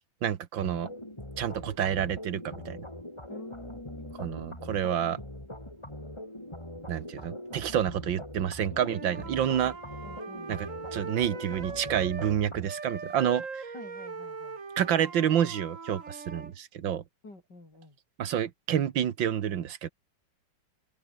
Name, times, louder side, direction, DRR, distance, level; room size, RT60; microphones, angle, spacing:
voice 1, 0.2-0.9 1.4-2.9 4.2-5.2 6.9-9.8 10.5-13.7 14.8-17.0 18.2-19.9, right 9 dB, 90° right, 2.0 m, -29 dB
sound 1, 0.6-12.7, left 1 dB, 15° left, 5.3 m, -42 dB
voice 2, 3.3-4.6 10.0-10.5 13.7-14.6 17.2-18.0, left 2 dB, 65° left, 7.8 m, -47 dB
Wind instrument woodwind instrument, 8.7-12.4 12.6-16.5, right 4 dB, 45° right, 2.5 m, -41 dB
omnidirectional pair, 2.0 m